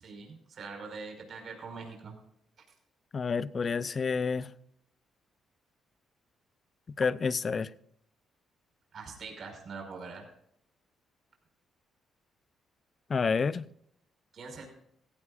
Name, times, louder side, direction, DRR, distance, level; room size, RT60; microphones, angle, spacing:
voice 1, 0.0-2.2 8.9-10.3 14.3-14.7, right 4 dB, 55° right, 5.3 m, -43 dB
voice 2, 3.1-4.5 7.0-7.7 13.1-13.7, left 5 dB, 40° left, 0.7 m, -29 dB
17.0 x 16.0 x 2.5 m
cardioid pair, 90°, 0 cm